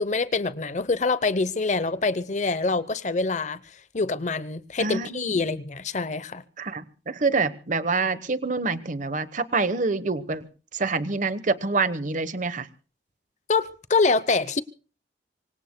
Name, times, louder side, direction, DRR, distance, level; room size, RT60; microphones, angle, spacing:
voice 1, 0.0-3.6 3.9-6.4 13.5-14.6, left 3 dB, 40° left, 0.8 m, -25 dB
voice 2, 4.8-5.3 6.6-10.4 10.7-12.7, right 3 dB, 45° right, 1.1 m, -26 dB
25.5 x 24.5 x 2.2 m
head